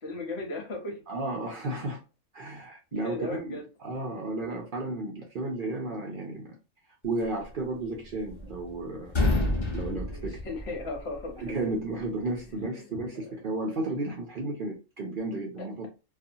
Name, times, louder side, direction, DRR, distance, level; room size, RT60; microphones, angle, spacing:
voice 1, 0.0-1.0 2.9-3.7 10.0-11.7 12.5-13.0 13.3-13.4, left 2 dB, 60° left, 2 dB, 1.1 m, -37 dB
voice 2, 1.1-2.0 2.3-6.6 7.0-9.1 9.7-10.3 11.4-15.9, right 2 dB, 55° right, 0 dB, 0.6 m, -33 dB
sound 1, 7.9-8.8 9.0-11.2, left 2 dB, 25° left, 0.8 m, -28 dB
2.6 x 2.4 x 2.6 m, 0.31 s
omnidirectional pair, 1.3 m